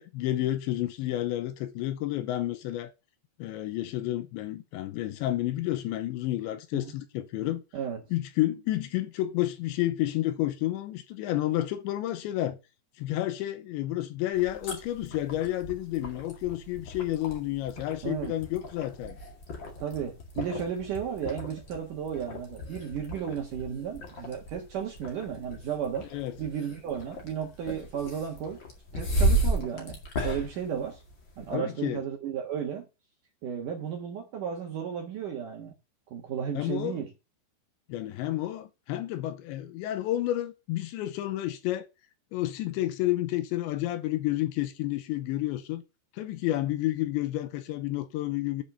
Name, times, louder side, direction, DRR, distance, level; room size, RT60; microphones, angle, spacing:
voice 1, 0.0-2.9 3.4-7.6 8.1-12.6 13.0-19.2 26.1-26.4 31.5-32.0 36.5-37.0 37.9-41.9 42.3-45.8 46.1-48.6, left 15 dB, 80° left, 3.0 m, -30 dB
sound 1, 14.3-31.5, right 1 dB, 40° left, 1.7 m, -34 dB
voice 2, 18.0-18.3 19.8-26.1 26.4-28.6 28.9-30.0 30.2-31.0 31.4-32.9 33.4-35.7 36.1-37.1, right 8 dB, 60° right, 2.2 m, -34 dB
8.9 x 5.5 x 6.7 m
omnidirectional pair, 5.4 m